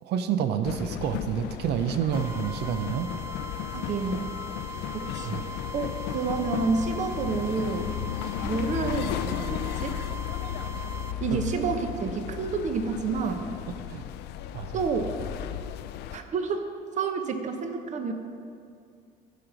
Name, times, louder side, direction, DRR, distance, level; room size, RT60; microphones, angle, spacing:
voice 1, 0.0-3.1 5.2-5.4 11.3-11.4 13.9-14.0 14.5-14.8, right 9 dB, 75° right, 9 dB, 0.7 m, -28 dB
sound 1, 0.6-16.2, left 11 dB, 80° left, 0.5 m, -34 dB
sound 2, 2.1-11.1, right 1 dB, 15° right, 0.4 m, -41 dB
voice 2, 3.7-4.4 4.9-7.9 8.4-10.0 11.2-13.5 14.7-15.1 16.1-16.7 17.0-18.1, right 4 dB, 45° right, 6 dB, 0.9 m, -29 dB
14.0 x 5.2 x 6.0 m, 2.4 s
cardioid pair, 110°, 17 cm